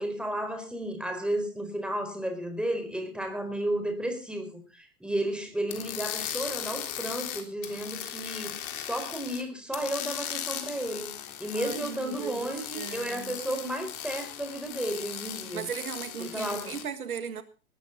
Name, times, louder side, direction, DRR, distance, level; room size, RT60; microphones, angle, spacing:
voice 1, 0.0-11.1 11.4-15.6 16.2-16.8, right 1 dB, ahead, 4.6 m, -33 dB
sound 1, 5.7-9.4 9.7-16.8, left 10 dB, 40° left, 3.6 m, -38 dB
voice 2, 11.5-13.4 15.5-17.4, right 7 dB, 70° right, 1.8 m, -37 dB
19.5 x 14.0 x 4.0 m
figure-of-eight pair, 100°, 44 cm